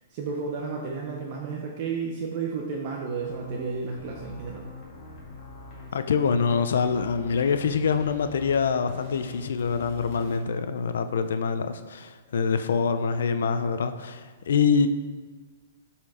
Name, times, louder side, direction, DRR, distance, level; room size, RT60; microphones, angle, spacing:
voice 1, 0.1-4.6, right 5 dB, 30° right, 0.7 m, -32 dB
sound 1, 3.0-10.4, left 3 dB, 25° left, 1.6 m, -44 dB
voice 2, 5.9-14.9, left 6 dB, 75° left, 0.5 m, -25 dB
10.0 x 4.4 x 4.9 m
hypercardioid pair, 175°, 0 cm